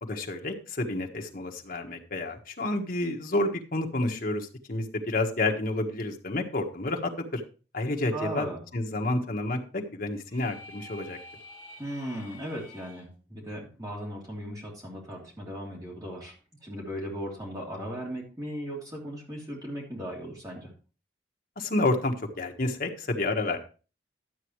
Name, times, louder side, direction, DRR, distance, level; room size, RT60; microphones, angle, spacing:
voice 1, 0.0-7.4 7.7-8.5 8.7-11.2 21.6-23.6, left 2 dB, 50° left, 3 dB, 1.5 m, -29 dB
voice 2, 8.1-8.6 11.8-16.3 16.6-20.7, equal, 20° right, -3 dB, 3.1 m, -37 dB
sound 1, 10.3-13.1, left 1 dB, 15° left, 3.7 m, -48 dB
12.0 x 8.3 x 3.2 m, 0.35 s
head